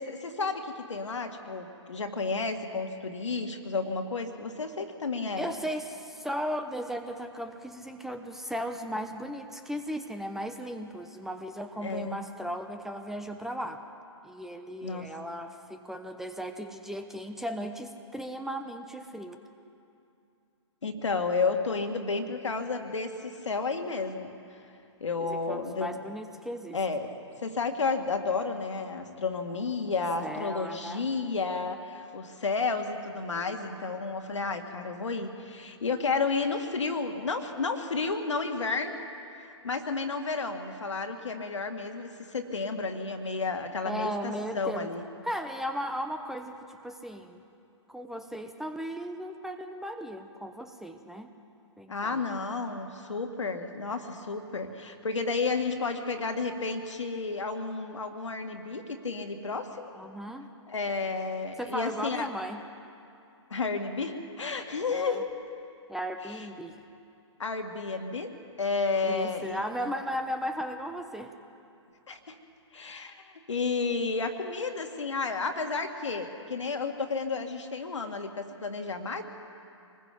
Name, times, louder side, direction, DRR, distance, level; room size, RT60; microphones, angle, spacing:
voice 1, 0.0-5.5 11.8-12.2 14.8-15.1 20.8-24.3 25.0-25.9 26.7-27.1 27.4-39.0 39.4-45.0 51.9-59.9 60.7-62.3 63.5-65.3 66.3-66.5 67.4-68.3 68.6-69.9 72.1-72.4 72.7-79.2, left 4 dB, 75° left, 5 dB, 2.2 m, -32 dB
voice 2, 5.4-13.8 14.2-19.4 25.2-26.8 30.2-31.1 43.8-44.9 45.2-47.4 47.9-51.3 51.8-52.2 59.9-60.5 61.6-62.6 64.9-65.2 65.9-66.8 69.0-71.3, equal, ahead, 6 dB, 0.8 m, -36 dB
26.0 x 20.5 x 5.3 m, 2.6 s
figure-of-eight pair, 125°, 16 cm